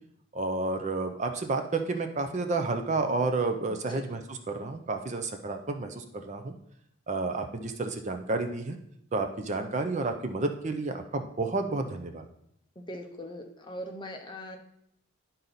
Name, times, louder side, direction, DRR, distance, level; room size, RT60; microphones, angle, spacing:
voice 1, 0.3-6.5 7.1-8.8 9.1-12.2, right 3 dB, 35° right, 7 dB, 0.5 m, -31 dB
voice 2, 12.8-14.6, equal, 20° left, 4 dB, 0.7 m, -40 dB
10.5 x 3.9 x 4.1 m, 0.73 s
head